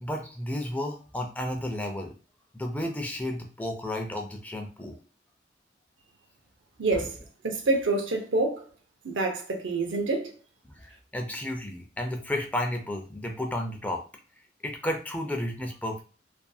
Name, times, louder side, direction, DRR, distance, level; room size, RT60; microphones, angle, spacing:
voice 1, 0.0-2.1 2.5-5.0 6.9-7.1 10.6-14.0 14.6-16.0, left 1 dB, 10° left, 0.4 m, -32 dB
voice 2, 6.8-7.2 7.4-8.6 9.0-10.3, right 2 dB, 85° right, 0.7 m, -27 dB
2.6 x 2.5 x 2.3 m
head